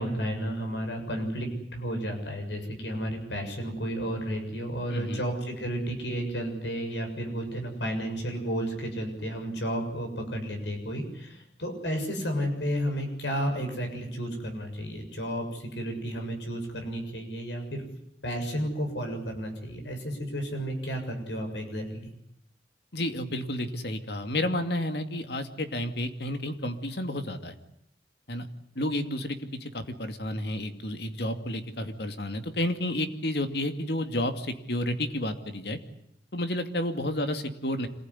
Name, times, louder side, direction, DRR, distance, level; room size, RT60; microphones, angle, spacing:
voice 1, 0.0-17.9 18.2-22.1, equal, 80° left, 4 dB, 7.0 m, -32 dB
voice 2, 4.9-5.2 22.9-27.5 28.3-28.5 28.8-35.8 36.3-37.9, left 1 dB, 65° left, 7 dB, 2.5 m, -31 dB
26.5 x 19.5 x 9.9 m, 0.75 s
head